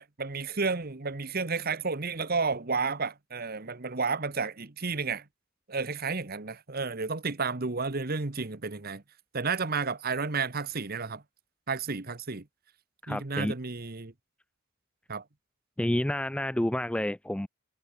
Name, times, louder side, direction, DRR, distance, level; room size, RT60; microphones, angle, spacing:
voice 1, 0.0-5.2 5.7-9.0 9.3-11.2 11.7-12.4 13.1-14.1 15.1-15.2, right 4 dB, 45° right, 1.2 m, -31 dB
voice 2, 13.0-13.5 15.8-17.5, left 1 dB, 5° left, 0.3 m, -29 dB
head